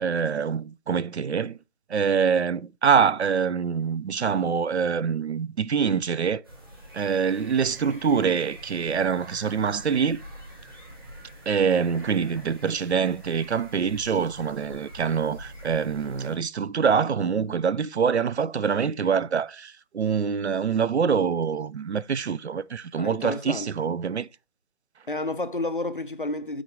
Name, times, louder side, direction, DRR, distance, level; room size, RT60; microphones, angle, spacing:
voice 1, 0.0-1.6 1.9-6.4 6.9-10.2 11.5-24.3, right 6 dB, 65° right, 0.5 m, -25 dB
sound 1, 6.4-16.3, equal, 20° right, 1.4 m, -45 dB
voice 2, 23.0-23.7 25.1-26.6, left 2 dB, 50° left, 0.5 m, -30 dB
6.4 x 3.9 x 4.6 m
figure-of-eight pair, 175°, 35 cm